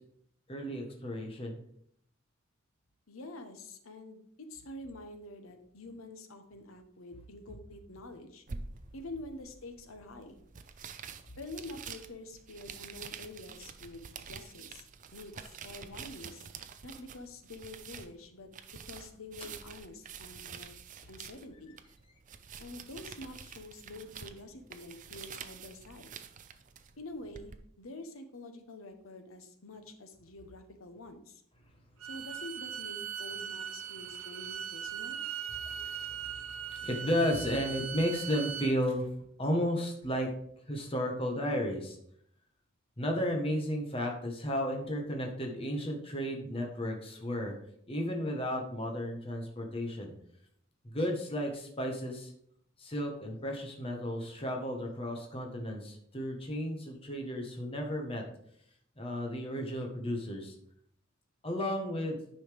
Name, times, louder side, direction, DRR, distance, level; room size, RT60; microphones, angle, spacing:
voice 1, 0.5-1.6 35.6-36.3 36.7-39.1 39.4-40.3 40.7-42.0 43.0-47.5 47.9-50.1 50.8-52.3 52.8-58.2 59.0-60.5 61.4-62.2, equal, 30° left, 1 dB, 1.3 m, -33 dB
voice 2, 3.1-4.2 4.5-8.4 8.9-10.4 11.4-14.9 15.1-16.5 16.8-18.5 18.9-20.7 21.1-21.7 22.6-26.1 27.0-31.4 32.0-35.2, left 2 dB, 85° left, 7 dB, 1.0 m, -47 dB
sound 1, 8.5-27.6, right 6 dB, 40° right, 0.5 m, -48 dB
Bowed string instrument, 32.0-38.7, right 8 dB, 85° right, 0.7 m, -40 dB
9.7 x 5.7 x 3.5 m, 0.69 s
head